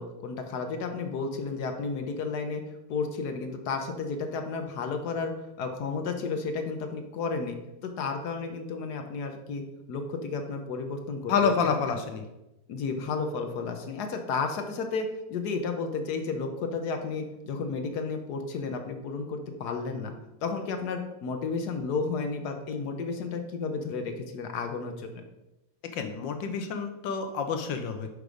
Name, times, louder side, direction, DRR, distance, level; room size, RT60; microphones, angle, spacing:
voice 1, 0.0-2.6 2.9-5.3 5.6-7.6 7.8-9.6 9.9-12.0 12.7-20.1 20.4-25.1, left 4 dB, 65° left, 5 dB, 1.3 m, -32 dB
voice 2, 11.3-12.2 25.8-28.1, left 5 dB, 85° left, 7 dB, 1.5 m, -28 dB
6.7 x 4.7 x 5.0 m, 0.94 s
omnidirectional pair, 1.9 m